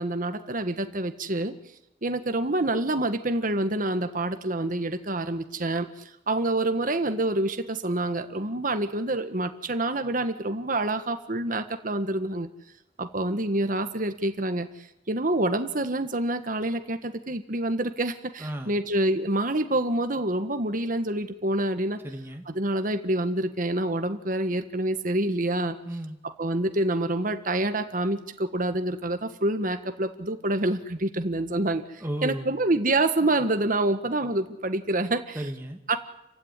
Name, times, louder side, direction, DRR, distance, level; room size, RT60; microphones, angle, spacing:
voice 1, 0.0-1.5 2.0-12.5 13.0-22.0 22.5-25.8 26.2-35.4 35.9-36.0, right 2 dB, 50° right, 8 dB, 1.6 m, -27 dB
voice 2, 18.4-18.8 22.0-22.4 25.9-26.2 32.0-32.5 35.3-35.8, right 1 dB, 15° right, 3 dB, 2.1 m, -34 dB
29.0 x 16.0 x 9.8 m, 0.87 s
head